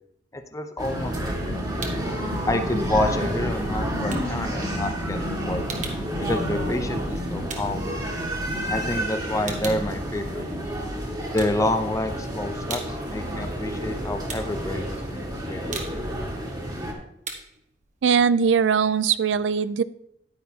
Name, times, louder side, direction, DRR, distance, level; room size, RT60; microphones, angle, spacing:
voice 1, 0.3-1.6 2.5-5.2 5.4-5.7 6.3-8.0 8.7-10.5 11.3-16.0, left 1 dB, 20° left, 7 dB, 0.6 m, -28 dB
sound 1, 0.8-16.9, equal, 25° right, 1.8 m, -29 dB
sound 2, 1.8-2.2 2.5-8.7 9.1-10.8 11.2-12.1 12.4-19.1, right 5 dB, 45° right, 1.2 m, -40 dB
voice 2, 18.0-19.8, right 6 dB, 75° right, 16 dB, 0.4 m, -20 dB
9.5 x 9.4 x 2.8 m, 0.75 s
head